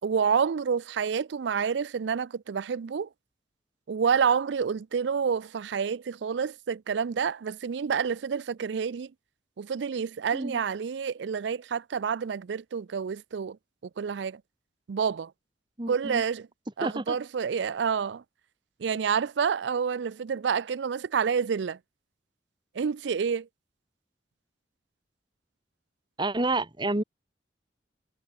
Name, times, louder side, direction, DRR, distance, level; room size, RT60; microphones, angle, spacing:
voice 1, 0.0-3.1 3.9-9.1 9.6-13.6 14.0-14.4 14.9-15.3 15.9-16.5 16.8-18.2 18.8-21.8 22.8-23.5, right 6 dB, 80° right, 0.4 m, -28 dB
voice 2, 15.8-16.2 16.8-17.2 26.2-27.0, right 2 dB, 25° right, 1.4 m, -29 dB
head